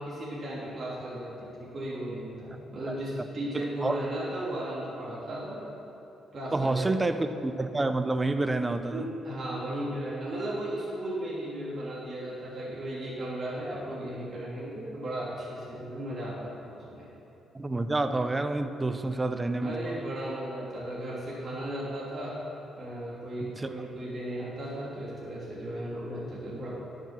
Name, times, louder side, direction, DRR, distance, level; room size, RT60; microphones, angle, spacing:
voice 1, 0.0-5.7 6.3-7.1 8.9-17.1 19.6-22.4 22.8-26.7, right 1 dB, 45° right, -7 dB, 2.9 m, -36 dB
voice 2, 3.5-4.0 6.5-9.1 17.5-19.8 23.4-23.7, right 2 dB, 20° right, 9 dB, 0.6 m, -28 dB
10.0 x 6.3 x 7.4 m, 2.9 s
cardioid pair, 90°, 0 cm